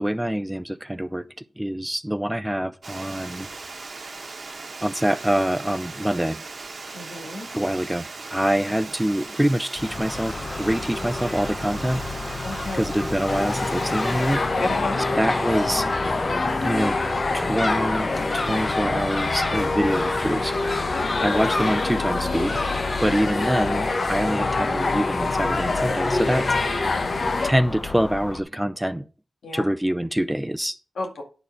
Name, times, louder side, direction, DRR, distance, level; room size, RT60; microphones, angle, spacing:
voice 1, 0.0-3.5 4.8-6.4 7.5-12.1 12.7-14.4 15.2-15.9 16.6-17.0 17.3-20.6 21.2-22.6 23.0-26.5 27.4-29.1 29.5-30.8, right 1 dB, 10° right, 0.6 m, -25 dB
Water, 2.8-14.4, right 3 dB, 60° right, 1.1 m, -38 dB
voice 2, 6.9-7.5 12.4-12.9 14.6-15.1 20.9-21.3 29.4-29.6 31.0-31.2, left 2 dB, 85° left, 2.1 m, -31 dB
Crow / Gull seagull, 9.8-28.4, left 2 dB, 35° left, 0.8 m, -30 dB
sound 1, 13.3-27.5, left 3 dB, 65° left, 1.1 m, -26 dB
9.9 x 4.4 x 6.3 m
cardioid pair, 50°, 0 cm